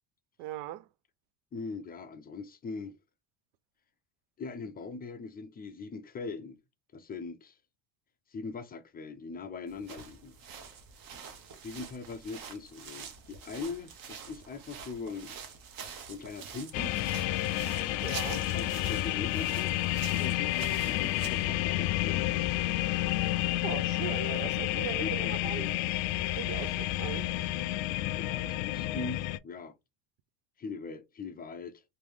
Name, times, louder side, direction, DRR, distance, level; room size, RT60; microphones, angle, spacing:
voice 1, 0.4-0.9 18.0-18.4 23.6-25.7 26.3-27.3, right 13 dB, 85° right, 0.5 m, -39 dB
voice 2, 1.5-3.0 4.4-6.6 6.9-7.6 8.3-10.4 11.6-15.4 16.0-17.0 17.9-22.4 24.7-25.8 28.2-29.7 30.6-31.8, left 4 dB, 25° left, 0.3 m, -41 dB
sound 1, 9.7-21.5, right 6 dB, 50° right, 1.0 m, -46 dB
sound 2, 16.7-29.4, left 16 dB, 75° left, 0.5 m, -30 dB
3.0 x 2.6 x 3.5 m
cardioid pair, 130°, 45 cm